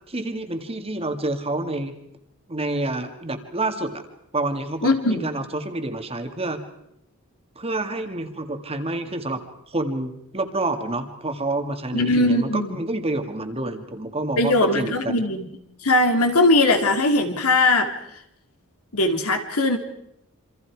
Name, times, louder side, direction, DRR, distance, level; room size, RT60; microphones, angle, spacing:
voice 1, 0.1-2.0 2.5-4.1 4.3-6.6 7.6-9.4 9.7-15.2, right 2 dB, 25° right, 7 dB, 2.0 m, -28 dB
voice 2, 4.8-5.3 11.9-12.8 14.4-15.5 15.8-17.9 18.9-19.8, left 2 dB, 80° left, 5 dB, 2.8 m, -20 dB
27.5 x 26.0 x 4.8 m, 0.78 s
head